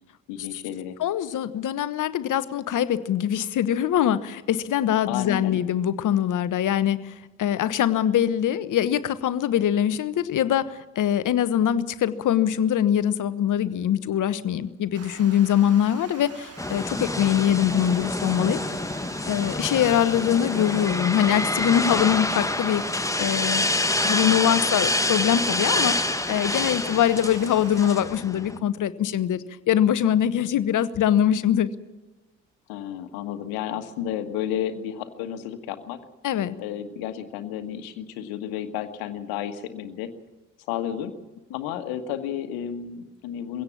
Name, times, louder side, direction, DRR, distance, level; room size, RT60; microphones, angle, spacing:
voice 1, 0.3-1.0 5.1-5.6 19.8-20.0 32.7-36.0 36.6-40.1 40.7-41.1 41.5-43.6, left 10 dB, 70° left, 9 dB, 1.6 m, -32 dB
voice 2, 1.0-18.6 19.3-23.7 24.0-31.7 36.2-36.5, left 10 dB, 50° left, 15 dB, 1.1 m, -23 dB
Water, 14.9-28.0, right 6 dB, 40° right, 1.7 m, -45 dB
sound 1, 16.6-28.6, left 2 dB, 10° left, 1.4 m, -27 dB
22.5 x 17.0 x 7.2 m, 1.1 s
figure-of-eight pair, 45°, 38 cm